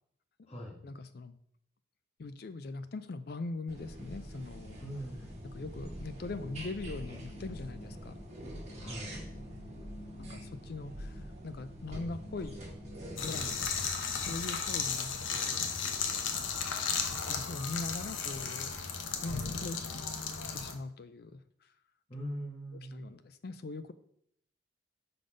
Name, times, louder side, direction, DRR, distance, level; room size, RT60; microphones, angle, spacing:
voice 1, 0.8-1.3 2.2-4.8 5.4-8.2 10.2-12.6 13.2-15.7 16.8-20.0 20.5-21.7 22.9-23.9, left 3 dB, 50° left, 12 dB, 0.4 m, -42 dB
sound 1, 3.7-13.6, equal, 35° right, 1.6 m, -44 dB
voice 2, 4.8-5.4 8.7-9.1 22.1-23.1, equal, 30° left, -1 dB, 1.3 m, -41 dB
sound 2, 13.2-20.7, left 6 dB, 85° left, 0.8 m, -35 dB
5.3 x 3.9 x 5.0 m, 0.69 s
head